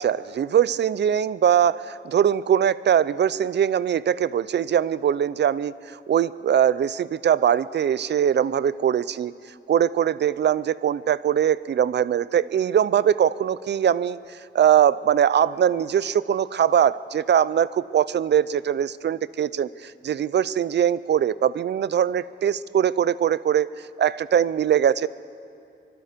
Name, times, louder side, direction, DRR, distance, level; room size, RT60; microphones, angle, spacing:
voice 1, 0.0-9.3 9.7-25.1, right 9 dB, 65° right, 18 dB, 0.5 m, -22 dB
24.0 x 23.0 x 5.1 m, 2.5 s
wide cardioid pair, 135°, 19 cm